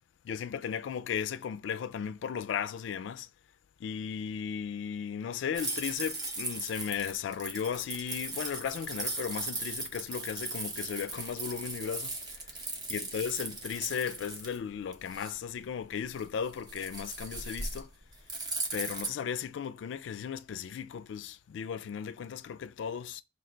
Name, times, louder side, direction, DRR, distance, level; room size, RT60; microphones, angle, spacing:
voice 1, 0.2-3.3 3.8-12.6 12.9-17.9 18.7-23.2, left 7 dB, 85° left, 0.3 m, -36 dB
sound 1, 5.5-19.1, right 2 dB, 25° right, 0.7 m, -38 dB
3.7 x 2.4 x 4.4 m
head